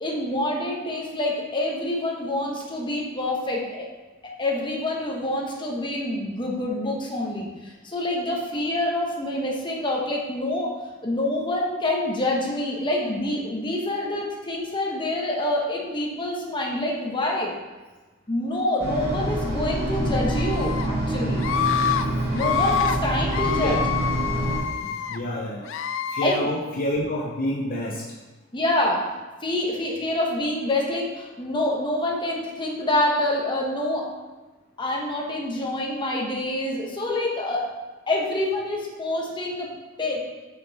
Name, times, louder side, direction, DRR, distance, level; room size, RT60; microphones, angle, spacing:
voice 1, 0.0-3.9 4.4-10.7 11.0-17.5 18.3-21.5 22.3-23.8 26.2-26.5 28.5-29.0 29.4-34.0 34.8-37.6 38.1-39.7 40.0-40.2, left 1 dB, 25° left, -2 dB, 1.2 m, -26 dB
sound 1, 18.8-24.6, right 1 dB, 50° right, 1.6 m, -26 dB
Screaming, 20.3-20.9 21.4-22.0 22.3-23.0 23.3-25.2 25.7-26.4, left 8 dB, 65° left, 0.4 m, -27 dB
voice 2, 23.3-23.8 24.8-25.7 26.1-28.0, left 1 dB, 45° left, -3 dB, 0.8 m, -28 dB
6.3 x 5.4 x 4.2 m, 1.2 s
head